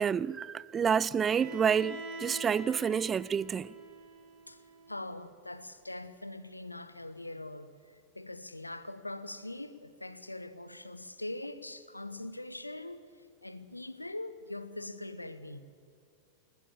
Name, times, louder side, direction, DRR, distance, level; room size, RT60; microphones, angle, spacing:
voice 1, 0.0-3.7, right 7 dB, 20° right, 0.4 m, -29 dB
Bowed string instrument, 1.2-5.1, right 2 dB, 40° right, 3.6 m, -45 dB
voice 2, 4.9-13.1 13.4-15.6, left 2 dB, 85° left, 1.0 m, -42 dB
21.0 x 19.5 x 7.2 m
figure-of-eight pair, 90°, 0 cm